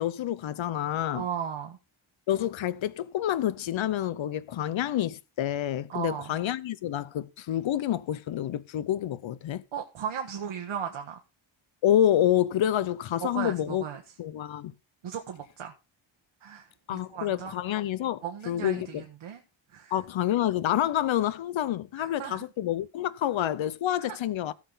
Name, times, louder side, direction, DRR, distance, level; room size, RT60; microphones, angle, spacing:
voice 1, 0.0-1.3 2.3-9.6 11.8-13.8 14.2-14.7 16.9-19.0 19.9-24.5, left 11 dB, 70° left, 0.8 m, -28 dB
voice 2, 1.1-1.8 5.9-6.3 9.7-11.2 13.2-14.0 15.0-15.7 16.4-17.5 18.2-19.4 19.7-20.0 22.0-22.5 24.0-24.2, right 8 dB, 80° right, 1.4 m, -36 dB
16.0 x 6.2 x 4.0 m
wide cardioid pair, 140°, 48 cm